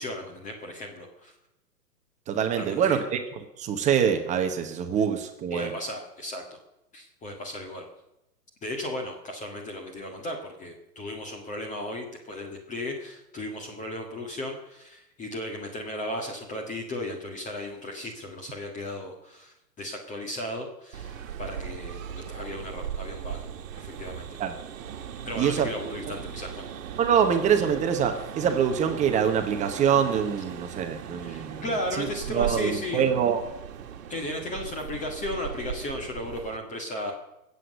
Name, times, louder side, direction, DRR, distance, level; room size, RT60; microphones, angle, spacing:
voice 1, 0.0-1.3 2.5-3.0 5.5-6.6 6.9-7.9 8.6-23.4 23.8-24.4 25.3-26.7 31.2-33.0 34.1-37.1, left 1 dB, 15° left, 2 dB, 1.7 m, -35 dB
voice 2, 2.3-5.7 24.4-24.6 25.4-25.9 27.0-31.6 31.9-33.4, right 8 dB, 15° right, 6 dB, 1.0 m, -25 dB
sound 1, 20.9-36.6, right 9 dB, 55° right, 1.7 m, -38 dB
21.5 x 8.2 x 6.6 m, 0.89 s
hypercardioid pair, 135°, 48 cm